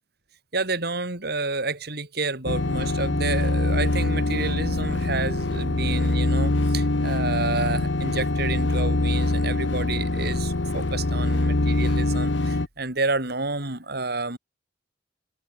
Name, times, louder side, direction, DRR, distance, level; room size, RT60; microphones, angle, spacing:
voice 1, 0.5-14.4, right 3 dB, 60° right, 4.6 m, -30 dB
sound 1, 2.5-12.7, left 2 dB, 75° left, 1.2 m, -24 dB
head